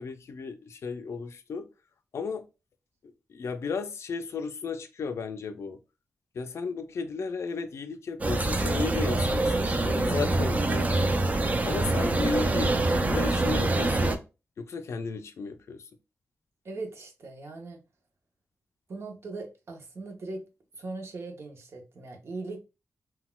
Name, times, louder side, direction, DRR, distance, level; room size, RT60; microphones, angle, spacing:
voice 1, 0.0-1.7 2.1-2.5 3.3-5.8 6.3-11.0 11.3-11.4 11.6-14.2 14.6-15.8, left 5 dB, 65° left, 0.3 m, -34 dB
sound 1, 8.2-14.2, right 2 dB, 30° right, 0.4 m, -25 dB
voice 2, 16.6-17.8 18.9-20.4 20.7-22.6, right 3 dB, 55° right, 0.7 m, -39 dB
3.9 x 2.2 x 2.2 m
wide cardioid pair, 125°, 5 cm